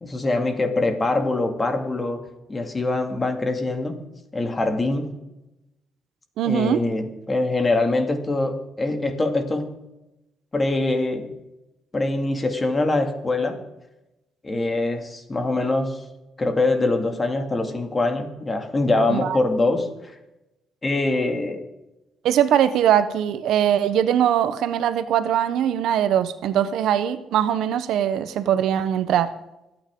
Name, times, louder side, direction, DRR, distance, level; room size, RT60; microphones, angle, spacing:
voice 1, 0.0-2.2 2.5-4.0 4.3-5.1 6.5-9.8 10.5-11.3 11.9-13.6 14.4-16.0 16.4-20.1 20.8-21.7, left 2 dB, 25° left, 5 dB, 2.2 m, -23 dB
voice 2, 6.4-6.8 19.1-19.3 22.2-29.3, right 10 dB, 80° right, 12 dB, 0.8 m, -21 dB
26.0 x 8.9 x 3.7 m, 0.95 s
cardioid pair, 90°, 0 cm